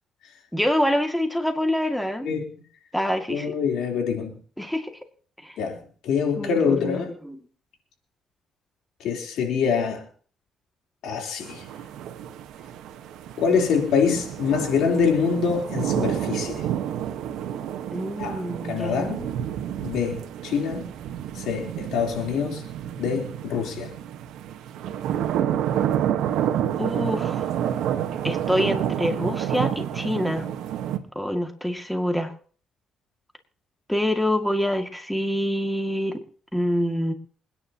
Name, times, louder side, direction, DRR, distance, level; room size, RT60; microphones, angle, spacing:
voice 1, 0.5-2.3 2.9-3.5 4.6-4.9 5.4-5.6 6.4-7.4 17.9-19.3 26.8-27.5 28.2-30.4 31.2-32.3 33.9-36.2 36.5-37.1, equal, 5° left, 2.1 m, -26 dB
voice 2, 3.3-4.4 5.6-7.1 9.0-10.0 11.0-11.6 13.4-16.7 18.2-18.4 18.7-19.2 19.8-20.9 21.4-22.6 23.0-23.9, left 6 dB, 80° left, 3.6 m, -25 dB
sound 1, 11.4-31.0, right 10 dB, 85° right, 1.3 m, -29 dB
28.0 x 10.0 x 2.9 m
cardioid pair, 90°, 0 cm